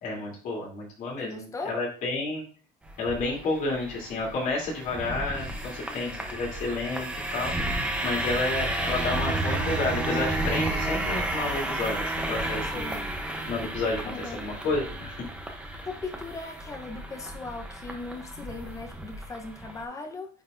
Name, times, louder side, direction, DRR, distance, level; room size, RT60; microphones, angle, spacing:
voice 1, 0.0-2.4 3.0-12.0 12.3-12.8 13.5-15.1 15.7-15.8, left 3 dB, 55° left, -3 dB, 3.1 m, -31 dB
voice 2, 1.2-1.7 5.3-6.2 12.7-13.1 14.0-14.5 15.9-20.3, left 3 dB, 20° left, 3 dB, 0.8 m, -39 dB
sound 1, 2.8-19.8, right 1 dB, 5° right, 0.8 m, -32 dB
9.1 x 4.1 x 2.6 m, 0.40 s
cardioid pair, 160°, 16 cm